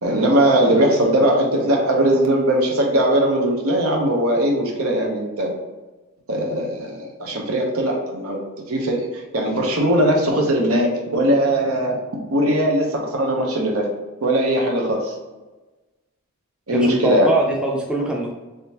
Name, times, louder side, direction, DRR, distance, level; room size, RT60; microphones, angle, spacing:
voice 1, 0.0-5.5 6.3-12.0 12.3-13.9 14.2-15.1 16.7-17.3, right 1 dB, 85° right, 1 dB, 0.8 m, -20 dB
voice 2, 16.7-18.3, right 2 dB, 5° right, -1 dB, 0.4 m, -22 dB
3.7 x 3.3 x 2.8 m, 1.2 s
head